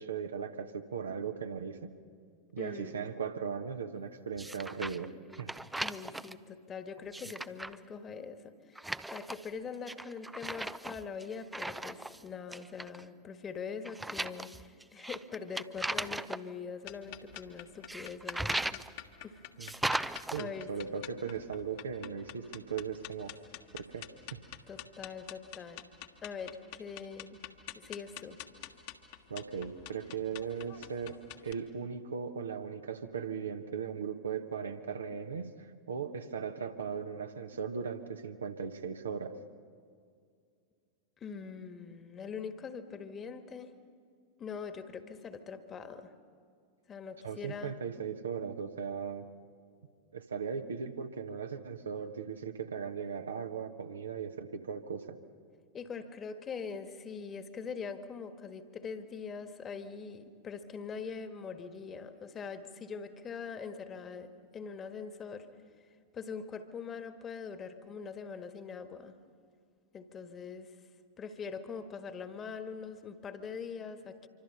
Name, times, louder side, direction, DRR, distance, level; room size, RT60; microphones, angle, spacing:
voice 1, 0.0-1.9 2.5-5.1 5.4-5.5 19.6-20.0 20.3-23.3 23.7-24.4 29.3-31.2 31.4-39.3 47.2-49.3 50.1-55.2, right 6 dB, 70° right, 6 dB, 1.2 m, -38 dB
voice 2, 2.6-3.1 5.8-18.8 19.2-19.4 20.4-21.0 24.7-25.9 26.2-27.4 27.7-28.4 41.2-43.7 44.4-46.1 46.9-47.7 55.7-65.5 66.1-69.1 69.9-70.8 71.2-74.3, left 5 dB, 25° left, 9 dB, 1.5 m, -43 dB
sound 1, 4.4-5.1 5.3-6.3 7.0-7.8 8.7-9.5 9.9-12.2 12.5-13.0 13.8-16.4 17.9-18.9 19.6-20.4, right 2 dB, 5° right, 0.5 m, -37 dB
sound 2, 16.8-31.5, left 12 dB, 50° left, 1.5 m, -48 dB
26.0 x 25.0 x 5.6 m, 2.2 s
figure-of-eight pair, 90°, 0 cm